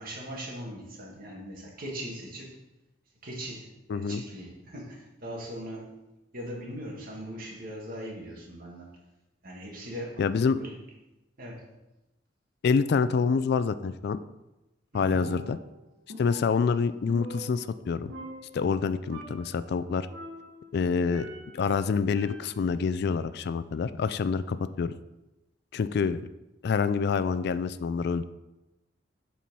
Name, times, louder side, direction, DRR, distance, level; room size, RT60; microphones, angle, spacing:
voice 1, 0.0-2.5 3.2-6.0 6.3-8.9 9.4-10.7 11.4-11.7 14.9-15.3, equal, 50° right, -1 dB, 1.8 m, -40 dB
voice 2, 3.9-4.2 10.2-10.6 12.6-14.2 14.9-15.6 16.2-18.1 18.5-20.1 20.7-24.9 25.7-26.2 26.6-28.2, left 5 dB, 60° left, 13 dB, 0.3 m, -27 dB
Percussion, 15.1-15.8 16.1-17.8 18.1-18.8 19.1-19.6 20.1-21.7 22.1-22.8, right 1 dB, 75° right, 1.3 m, -44 dB
7.4 x 4.3 x 5.4 m, 0.97 s
head